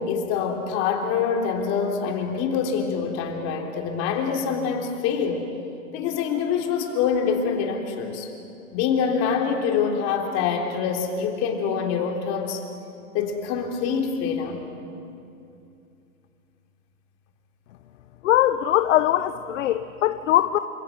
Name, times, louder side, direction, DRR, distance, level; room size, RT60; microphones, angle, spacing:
voice 1, 0.0-5.5 5.9-8.3 8.7-12.6 13.1-14.6, left 6 dB, 35° left, 2 dB, 3.7 m, -25 dB
voice 2, 18.2-20.6, left 13 dB, 60° left, 11 dB, 1.0 m, -21 dB
29.0 x 27.0 x 6.2 m, 2.6 s
hypercardioid pair, 130°, 43 cm